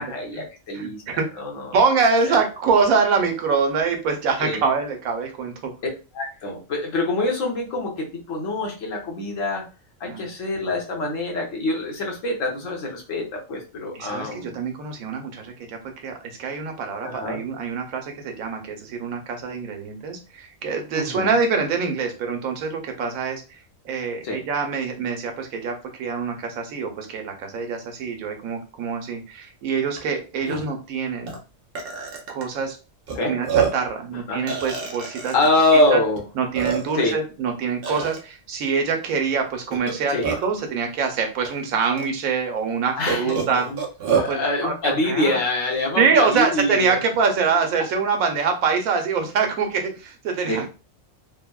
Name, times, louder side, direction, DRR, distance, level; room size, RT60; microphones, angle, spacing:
voice 1, 0.0-1.0 1.4-1.7 2.3-2.4 4.4-4.6 5.8-9.6 10.0-14.6 17.0-17.4 20.9-21.3 24.2-24.4 30.5-30.6 33.1-33.4 34.3-34.4 35.3-36.2 36.9-37.2 40.1-40.3 43.0-43.3 43.7-43.8 44.1-47.0 50.5-50.6, left 2 dB, 70° left, 0 dB, 1.2 m, -25 dB
voice 2, 0.7-1.3 1.7-5.7 10.1-10.3 13.9-23.4 23.8-31.3 32.3-32.8 33.2-35.3 35.7-36.0 36.3-43.7 44.2-45.4 46.0-50.7, right 5 dB, 85° right, 4 dB, 1.1 m, -24 dB
Burping eructation, 30.0-30.1 30.4-30.6 31.3-31.4 31.7-32.4 33.1-33.2 33.4-33.9 34.5-35.5 36.2-36.3 36.5-37.1 37.8-38.2 39.7-40.6 41.4-41.5 42.0-42.1 43.1-44.3, right 6 dB, 55° right, 0.8 m, -26 dB
3.4 x 2.0 x 2.2 m, 0.31 s
omnidirectional pair, 1.4 m